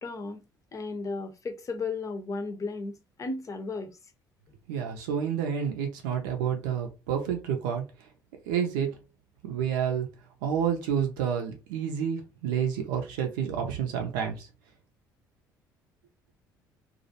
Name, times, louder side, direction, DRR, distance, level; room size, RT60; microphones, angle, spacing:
voice 1, 0.0-0.4 0.7-4.0, left 3 dB, 30° left, 0.6 m, -34 dB
voice 2, 4.7-7.8 8.5-8.9 9.4-10.1 10.4-14.5, right 8 dB, 70° right, 0.5 m, -29 dB
2.4 x 2.0 x 2.7 m
figure-of-eight pair, 55°, 11 cm